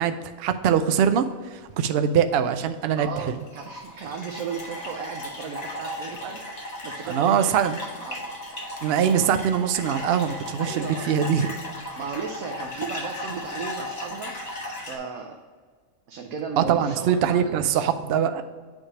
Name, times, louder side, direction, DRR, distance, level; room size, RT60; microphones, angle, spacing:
voice 1, 0.0-3.3 7.1-7.8 8.8-11.5 16.6-18.4, right 8 dB, 65° right, 9 dB, 0.6 m, -23 dB
sound 1, 2.6-2.9 3.3-15.0, left 1 dB, 30° left, 1.2 m, -36 dB
voice 2, 3.0-6.6 6.8-7.6 8.0-8.2 10.6-11.1 11.9-14.3 14.9-15.4 16.1-17.8, right 5 dB, 80° right, 2 dB, 1.1 m, -35 dB
8.5 x 3.3 x 6.1 m, 1.5 s
omnidirectional pair, 1.4 m